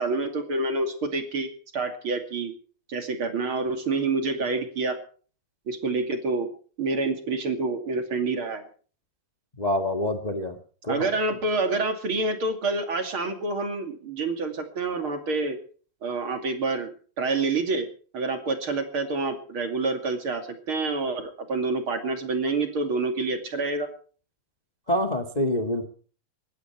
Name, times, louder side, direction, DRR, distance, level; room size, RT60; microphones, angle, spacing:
voice 1, 0.0-2.5 2.9-5.0 5.7-6.5 6.8-8.6 10.9-15.6 16.0-16.9 17.2-17.9 18.1-23.9, right 3 dB, 40° right, 6 dB, 2.9 m, -27 dB
voice 2, 9.6-10.6 10.8-11.1 24.9-25.8, left 1 dB, 50° left, 5 dB, 0.5 m, -26 dB
20.0 x 15.5 x 4.5 m, 0.42 s
omnidirectional pair, 4.2 m